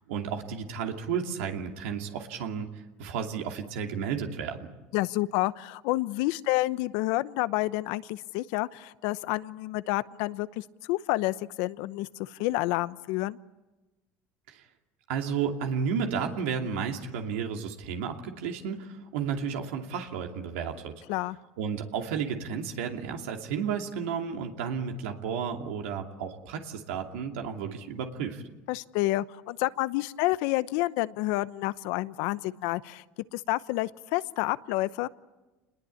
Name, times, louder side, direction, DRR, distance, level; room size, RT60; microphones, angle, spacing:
voice 1, 0.1-2.7 3.0-4.7 14.5-14.6 15.1-20.9 21.6-28.4, right 6 dB, 85° right, 3 dB, 2.6 m, -32 dB
voice 2, 4.9-13.4 21.1-21.4 28.7-33.0 33.3-35.1, left 18 dB, 75° left, 16 dB, 0.8 m, -29 dB
27.5 x 21.0 x 8.5 m, 1.1 s
supercardioid pair, 100°, 7 cm